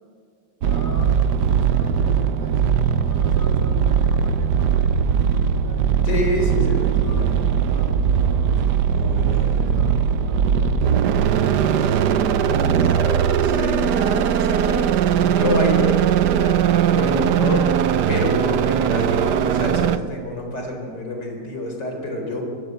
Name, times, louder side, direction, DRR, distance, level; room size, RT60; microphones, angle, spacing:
voice 1, 0.6-6.1 7.0-13.5 17.4-17.6, left 1 dB, 10° left, 2 dB, 2.0 m, -41 dB
sound 1, 0.6-20.0, right 8 dB, 65° right, 1.2 m, -19 dB
voice 2, 6.0-7.3 8.9-9.6 12.5-14.9 15.3-16.6 16.9-22.4, left 1 dB, 50° left, 2 dB, 4.9 m, -27 dB
23.0 x 23.0 x 8.1 m, 2.3 s
omnidirectional pair, 2.4 m